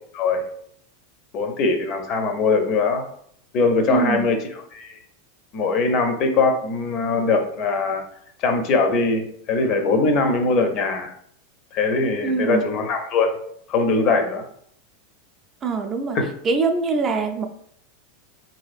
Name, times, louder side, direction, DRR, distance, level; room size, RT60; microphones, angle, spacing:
voice 1, 1.3-3.0 3.5-4.4 4.7-5.0 5.5-8.0 8.4-11.1 11.7-13.3 13.7-14.4 16.1-16.2, left 3 dB, 45° left, 5 dB, 0.5 m, -21 dB
voice 2, 3.9-4.3 12.2-12.6 15.6-16.2 16.4-17.5, right 4 dB, 30° right, 5 dB, 0.3 m, -23 dB
2.8 x 2.7 x 2.4 m, 0.65 s
figure-of-eight pair, 85°, 0 cm